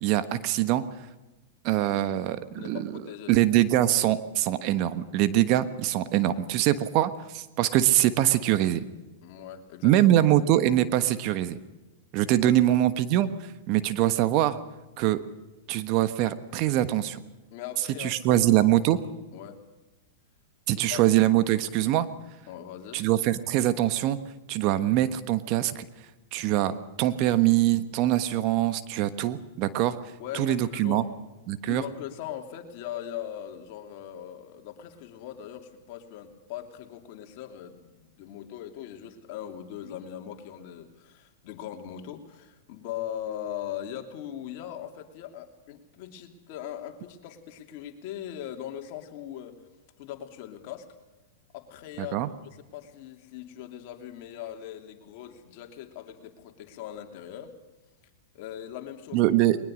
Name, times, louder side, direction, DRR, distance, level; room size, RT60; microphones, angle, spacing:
voice 1, 0.0-0.8 1.6-2.9 3.3-8.8 9.8-11.6 12.1-13.3 13.7-14.6 15.0-15.2 15.7-17.2 18.0-19.0 20.7-22.1 22.9-24.2 24.5-25.9 26.3-30.0 30.3-31.0 31.5-31.8 52.0-52.3 59.1-59.6, right 13 dB, 45° right, 12 dB, 1.3 m, -23 dB
voice 2, 2.6-3.3 9.2-10.1 12.2-12.8 17.5-18.7 19.3-19.6 20.7-21.0 22.5-23.0 30.2-31.1 31.7-49.6 50.0-50.9 51.5-52.2 52.4-57.5 58.3-59.2, left 10 dB, 50° left, 5 dB, 2.9 m, -40 dB
21.0 x 20.0 x 6.5 m, 1.1 s
hypercardioid pair, 110°, 0 cm